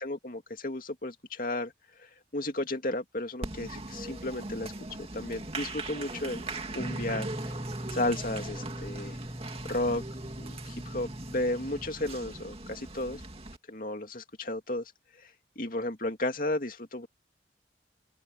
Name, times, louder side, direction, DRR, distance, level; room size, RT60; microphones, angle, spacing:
voice 1, 0.0-1.7 2.0-4.7 5.1-6.4 6.7-7.3 7.9-9.2 9.7-10.0 10.4-13.2 13.7-14.9 15.2-15.3 15.6-17.1, left 1 dB, 50° left, 2.6 m, -33 dB
Applause, 3.4-13.6, right 2 dB, 35° right, 2.4 m, -40 dB
sound 1, 6.8-11.9, equal, 10° right, 1.1 m, -41 dB
open air
head